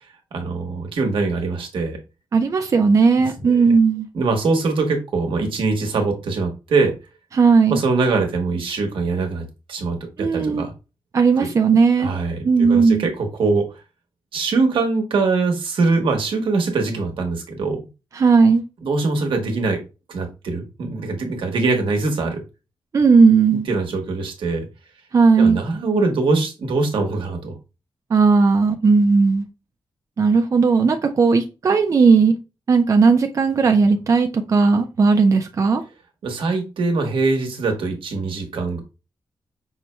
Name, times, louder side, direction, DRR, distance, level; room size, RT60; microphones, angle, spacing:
voice 1, 0.3-2.0 3.2-3.7 4.1-6.9 7.7-10.7 11.4-11.5 12.0-13.7 14.3-17.9 18.8-19.8 20.1-22.4 23.5-24.7 25.4-27.5 36.2-38.8, right 3 dB, 85° right, 4 dB, 1.0 m, -23 dB
voice 2, 2.3-4.1 7.4-7.8 10.2-10.6 11.1-12.1 12.4-13.1 18.2-18.6 22.9-23.7 25.1-25.6 28.1-29.4 30.2-32.3 32.7-35.8, right 4 dB, 40° right, 5 dB, 0.4 m, -16 dB
5.5 x 2.2 x 2.9 m, 0.29 s
wide cardioid pair, 175°, 9 cm